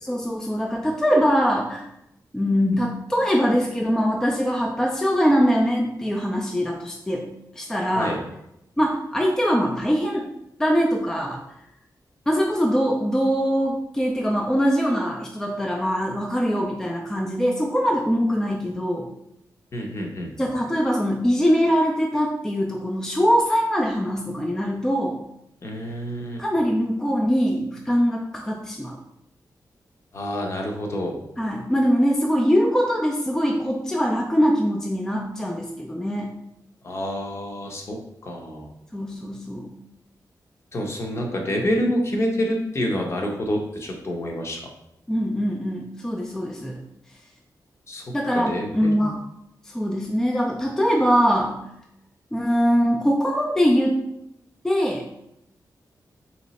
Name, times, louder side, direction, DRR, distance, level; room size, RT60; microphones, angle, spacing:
voice 1, 0.0-1.8 2.3-7.3 7.6-8.2 8.8-10.3 10.6-11.4 12.3-19.1 20.4-25.2 26.4-29.0 31.4-36.3 38.9-39.7 45.1-46.8 48.1-49.2 49.7-51.6 52.3-54.0 54.6-55.0, equal, 5° left, 0 dB, 0.3 m, -22 dB
voice 2, 19.7-20.3 25.6-26.4 30.1-31.2 36.8-38.0 38.2-38.7 40.7-44.6 47.9-48.0 48.3-49.2, equal, 40° left, 1 dB, 0.7 m, -27 dB
3.2 x 2.9 x 4.0 m, 0.81 s
wide cardioid pair, 170°, 7 cm